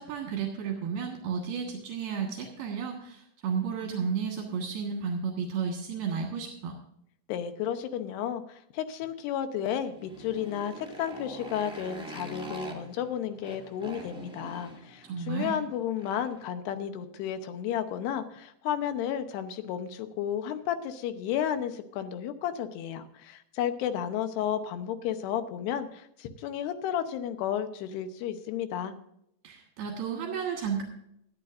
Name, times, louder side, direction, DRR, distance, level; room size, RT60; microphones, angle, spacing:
voice 1, 0.0-6.8 15.0-15.6 29.4-30.8, right 6 dB, 75° right, 0 dB, 3.5 m, -32 dB
voice 2, 7.3-29.0, left 9 dB, 85° left, 9 dB, 3.0 m, -32 dB
Motorcycle, 9.8-16.5, right 1 dB, 5° right, 0.3 m, -44 dB
19.0 x 12.0 x 2.6 m, 0.75 s
omnidirectional pair, 4.7 m